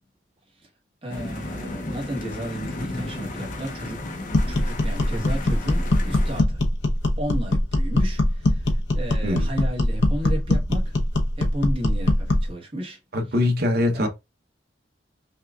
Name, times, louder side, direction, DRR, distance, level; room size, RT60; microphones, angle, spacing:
voice 1, 1.0-4.0 4.5-6.6 7.2-11.0 11.4-13.0 13.9-14.1, right 1 dB, 30° right, 1.3 m, -33 dB
sound 1, 1.1-6.4, left 2 dB, 45° left, 0.7 m, -34 dB
sound 2, 4.3-12.5, left 1 dB, 85° left, 0.8 m, -22 dB
voice 2, 13.1-14.1, left 1 dB, 60° right, 0.9 m, -22 dB
5.6 x 2.4 x 2.4 m
head